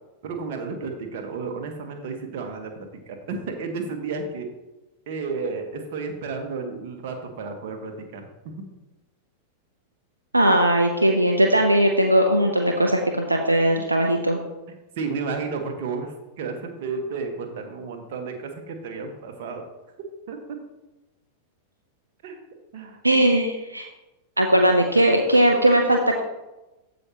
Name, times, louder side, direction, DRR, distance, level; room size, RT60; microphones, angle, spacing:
voice 1, 0.2-4.5 5.1-8.6 13.8-13.9 14.7-19.6 20.3-20.4 22.2-22.4 22.7-23.0, right 4 dB, 50° right, 4 dB, 1.4 m, -32 dB
voice 2, 10.3-14.4 23.0-23.9 24.4-26.2, right 1 dB, 80° right, 2 dB, 0.7 m, -19 dB
15.0 x 5.3 x 3.0 m, 1.0 s
figure-of-eight pair, 90°, 0 cm